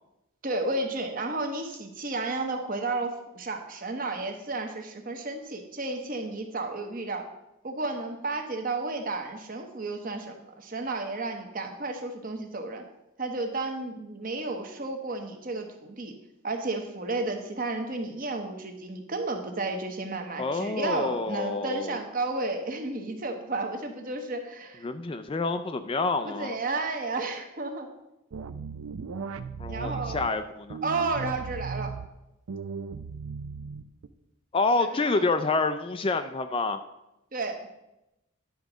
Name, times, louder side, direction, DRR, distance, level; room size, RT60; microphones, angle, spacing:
voice 1, 0.4-7.2 7.6-12.8 13.2-16.1 16.4-24.8 26.2-27.9 29.7-30.3 30.8-31.9 34.8-35.2 37.3-37.6, right 3 dB, 40° right, 5 dB, 1.0 m, -32 dB
voice 2, 20.4-22.0 24.8-26.6 29.6-30.8 34.5-36.8, left 3 dB, 25° left, 10 dB, 0.3 m, -28 dB
sound 1, 28.3-30.3 30.7-32.1 32.5-34.1, right 5 dB, 90° right, 0.5 m, -37 dB
10.5 x 3.9 x 6.1 m, 0.91 s
head